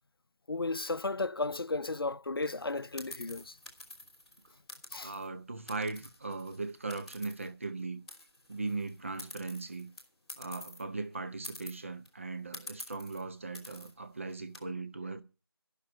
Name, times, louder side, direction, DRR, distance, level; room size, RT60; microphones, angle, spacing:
voice 1, 0.5-3.6 4.9-5.1, left 3 dB, 65° left, 0.6 m, -34 dB
sound 1, 2.4-5.3 5.7-7.8 8.1-10.8 11.1-11.2 11.4-12.1 12.5-13.2 13.5-13.9 14.3-14.6, left 1 dB, ahead, 1.4 m, -48 dB
voice 2, 5.0-8.0 8.5-9.9 10.4-15.2, right 3 dB, 30° right, 0.8 m, -38 dB
12.0 x 6.6 x 8.8 m
figure-of-eight pair, 165°, 13 cm